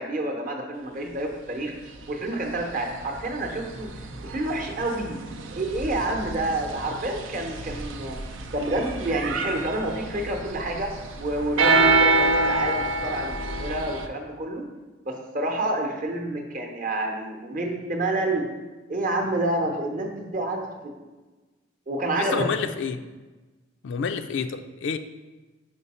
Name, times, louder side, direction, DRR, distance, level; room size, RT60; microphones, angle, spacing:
voice 1, 0.0-1.7 2.1-3.9 4.2-5.2 5.5-8.2 8.5-14.7 15.0-18.5 18.9-20.9 21.9-22.5, right 1 dB, 45° right, 2 dB, 0.8 m, -28 dB
sound 1, 1.9-2.0 2.5-14.1, right 3 dB, 80° right, 0.5 m, -27 dB
voice 2, 22.2-23.0 23.8-25.0, left 6 dB, 65° left, 9 dB, 0.3 m, -29 dB
5.1 x 4.6 x 4.2 m, 1.2 s
head